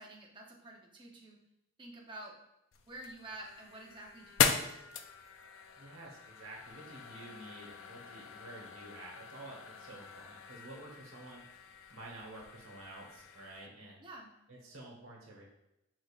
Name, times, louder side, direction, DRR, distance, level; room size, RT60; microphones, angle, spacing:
voice 1, 0.0-1.4 1.8-2.3 2.8-4.8 14.0-14.3, right 2 dB, 25° right, -1 dB, 0.7 m, -49 dB
sound 1, 2.7-13.7, left 7 dB, 70° left, 0.4 m, -39 dB
voice 2, 5.8-14.0 14.5-15.4, right 2 dB, 80° right, -2 dB, 1.1 m, -50 dB
5.2 x 3.7 x 2.4 m, 0.91 s
head